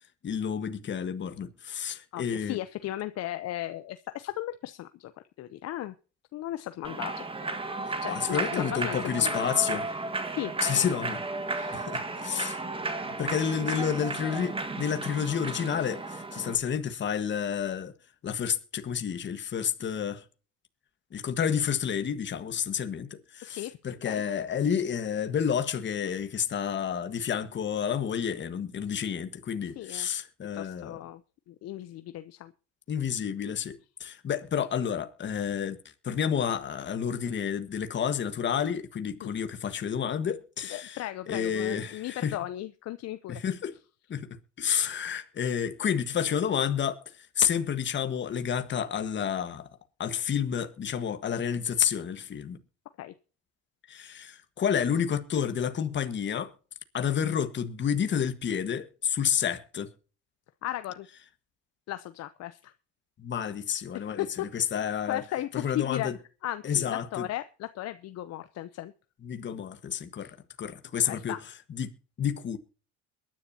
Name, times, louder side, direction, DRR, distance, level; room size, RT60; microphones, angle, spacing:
voice 1, 0.2-2.6 8.1-9.8 10.6-11.2 11.7-12.6 13.2-17.9 18.2-20.2 21.1-31.0 32.9-35.8 36.0-41.0 41.3-42.4 43.3-43.7 44.1-44.3 44.6-47.0 47.4-49.7 50.0-52.6 53.9-56.5 56.9-59.9 63.2-65.2 65.5-66.2 66.6-67.3 69.2-70.3 70.6-71.3 71.7-71.9 72.2-72.6, left 8 dB, 35° left, 1.5 m, -30 dB
voice 2, 2.1-5.1 5.4-5.9 6.3-7.3 8.0-9.4 9.9-10.9 11.5-11.9 23.4-23.8 24.0-24.2 29.8-30.1 30.5-31.2 31.5-32.5 39.2-39.3 40.7-43.4 53.0-53.1 60.6-61.1 61.9-62.7 63.9-64.5 65.1-66.1 66.4-68.9 71.0-71.4, left 13 dB, 50° left, 0.7 m, -36 dB
Human voice / Clapping / Cheering, 6.8-16.6, right 3 dB, 15° right, 1.6 m, -34 dB
22.5 x 10.5 x 2.8 m
supercardioid pair, 100°, 32 cm